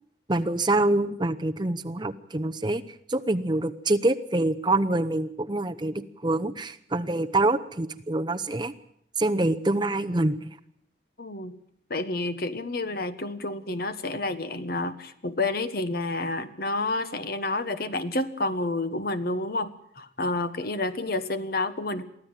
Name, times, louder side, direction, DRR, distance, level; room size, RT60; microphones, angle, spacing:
voice 1, 0.3-2.8 3.1-8.7 9.2-10.5, right 2 dB, 25° right, 9 dB, 0.8 m, -25 dB
voice 2, 11.2-11.5 11.9-22.0, left 2 dB, 55° left, 11 dB, 1.4 m, -29 dB
23.5 x 14.5 x 9.0 m, 0.68 s
head